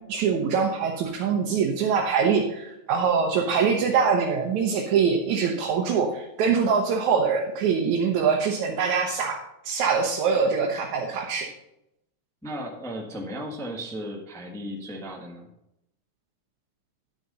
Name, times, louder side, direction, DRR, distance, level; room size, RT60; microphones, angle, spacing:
voice 1, 0.1-11.5, right 6 dB, 80° right, 1 dB, 2.4 m, -24 dB
voice 2, 12.4-15.5, equal, 5° left, 0 dB, 0.5 m, -35 dB
11.0 x 6.6 x 5.4 m, 0.84 s
omnidirectional pair, 3.3 m